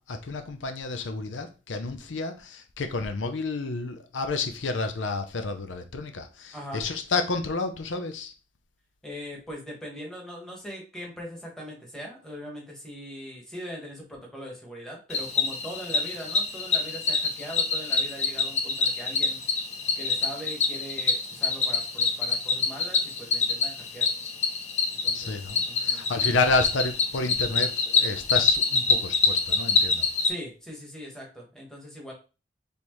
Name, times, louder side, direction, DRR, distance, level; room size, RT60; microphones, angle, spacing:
voice 1, 0.0-8.3 25.1-30.1, left 3 dB, 90° left, 0.6 m, -30 dB
voice 2, 6.5-6.8 9.0-19.4 19.9-24.1 24.9-25.4 25.6-26.1 30.2-32.1, equal, 5° left, 1.3 m, -40 dB
Cricket, 15.1-30.3, left 4 dB, 35° left, 0.6 m, -26 dB
4.4 x 3.5 x 3.1 m
head